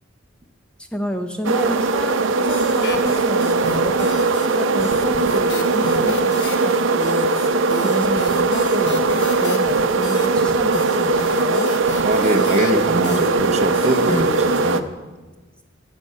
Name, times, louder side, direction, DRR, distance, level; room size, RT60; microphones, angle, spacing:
voice 1, 0.8-7.6 7.8-11.7, equal, 5° left, 5 dB, 0.6 m, -30 dB
sound 1, 1.4-14.8, right 3 dB, 85° right, 0.6 m, -19 dB
sound 2, 2.5-4.5 4.8-14.6, left 2 dB, 65° left, 1.0 m, -34 dB
voice 2, 12.0-14.8, right 1 dB, 35° right, 5 dB, 0.8 m, -22 dB
13.5 x 8.4 x 5.5 m, 1.3 s
head